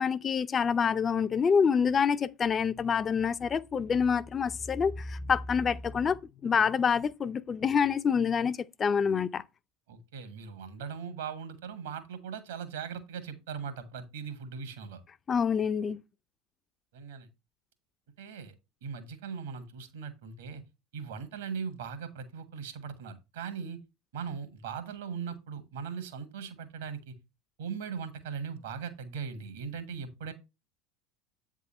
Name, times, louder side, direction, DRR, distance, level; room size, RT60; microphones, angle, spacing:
voice 1, 0.0-9.4 15.3-16.0, left 6 dB, 30° left, 0.4 m, -27 dB
voice 2, 9.9-15.0 16.9-17.3 18.2-18.5 18.8-20.6 20.9-23.8 24.1-27.1 27.6-30.3, right 6 dB, 70° right, 1.4 m, -39 dB
8.3 x 3.7 x 5.4 m
figure-of-eight pair, 70°, 0 cm